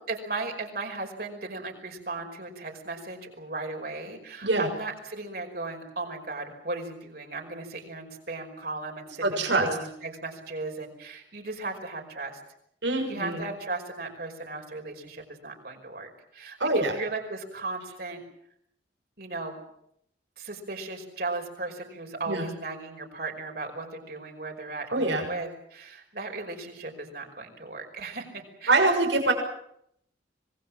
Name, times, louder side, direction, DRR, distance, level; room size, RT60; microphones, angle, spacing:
voice 1, 0.1-12.4 13.1-18.2 19.2-19.6 20.4-28.9, right 3 dB, 55° right, 3 dB, 5.3 m, -36 dB
voice 2, 9.2-9.7 12.8-13.4 16.6-16.9 22.3-22.5 24.9-25.3 28.7-29.3, right 2 dB, 75° right, 3 dB, 6.5 m, -24 dB
25.5 x 20.5 x 7.5 m, 0.73 s
head